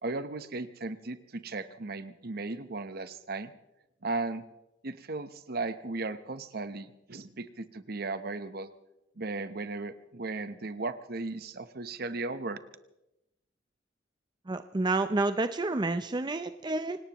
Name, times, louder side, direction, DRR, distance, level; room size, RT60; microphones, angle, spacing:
voice 1, 0.0-3.5 4.0-4.4 4.8-8.7 9.2-12.6, right 3 dB, 55° right, 12 dB, 0.9 m, -36 dB
voice 2, 14.5-17.0, right 2 dB, 25° right, 10 dB, 0.5 m, -29 dB
25.0 x 19.0 x 3.0 m, 0.90 s
head